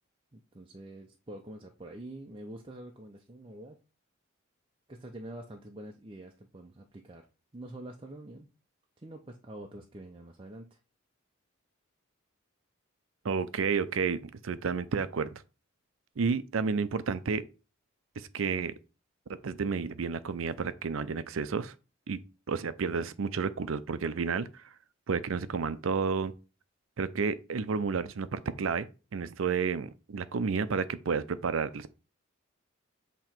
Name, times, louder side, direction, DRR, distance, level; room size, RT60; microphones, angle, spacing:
voice 1, 0.3-3.8 4.9-7.3 7.5-8.5 9.0-10.8, right 1 dB, 25° right, 0.5 m, -46 dB
voice 2, 13.2-15.4 16.2-17.4 18.2-18.7 19.4-21.7 22.1-22.2 22.5-24.5 25.1-26.3 27.0-28.9 29.1-31.9, right 5 dB, 75° right, 0.5 m, -31 dB
7.6 x 3.0 x 4.4 m
head